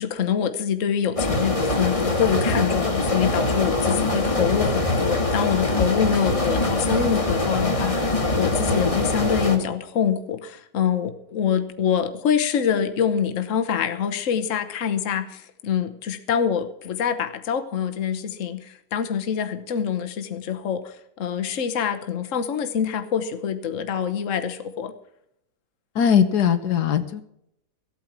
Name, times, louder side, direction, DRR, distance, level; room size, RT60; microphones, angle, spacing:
voice 1, 0.0-24.9, left 8 dB, 55° left, 8 dB, 1.3 m, -25 dB
sound 1, 1.2-9.6, left 2 dB, 20° left, 1.5 m, -23 dB
voice 2, 25.9-27.2, left 8 dB, 80° left, 10 dB, 1.6 m, -20 dB
15.5 x 8.8 x 5.9 m, 0.75 s
omnidirectional pair, 1.7 m